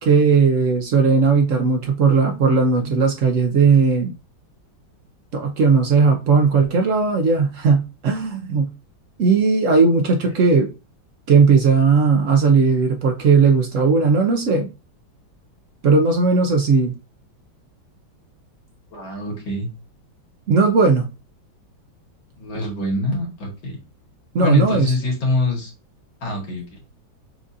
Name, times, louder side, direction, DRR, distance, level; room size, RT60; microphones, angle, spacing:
voice 1, 0.0-4.1 5.3-8.7 9.2-10.7 11.3-14.7 15.8-16.9 20.5-21.1 24.3-24.9, right 4 dB, 85° right, 0.6 m, -17 dB
voice 2, 18.9-19.7 22.4-23.8 24.4-25.7 26.2-26.8, left 2 dB, 75° left, 2.2 m, -24 dB
6.2 x 2.6 x 2.5 m
omnidirectional pair, 2.1 m